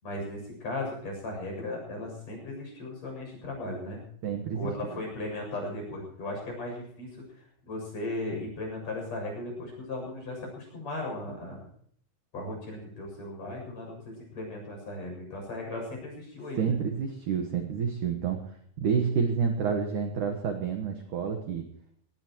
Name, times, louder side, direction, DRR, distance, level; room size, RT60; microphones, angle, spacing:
voice 1, 0.0-4.0 4.5-11.6 12.3-16.8, left 2 dB, 35° left, 0 dB, 8.3 m, -37 dB
voice 2, 4.2-5.0 16.6-18.5 18.8-21.7, right 6 dB, 65° right, 4 dB, 2.1 m, -29 dB
22.5 x 18.0 x 3.1 m, 0.62 s
omnidirectional pair, 5.3 m